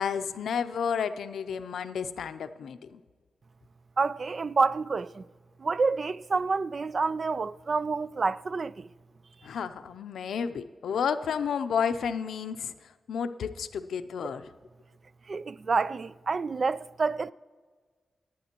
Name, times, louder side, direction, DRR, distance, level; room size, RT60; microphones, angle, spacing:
voice 1, 0.0-3.0 9.4-12.7 13.1-14.5, left 7 dB, 85° left, 0.5 m, -31 dB
voice 2, 4.0-5.2 5.6-8.9 15.3-17.3, right 4 dB, 50° right, 0.3 m, -28 dB
25.0 x 9.1 x 2.9 m
cardioid pair, 65°, 0 cm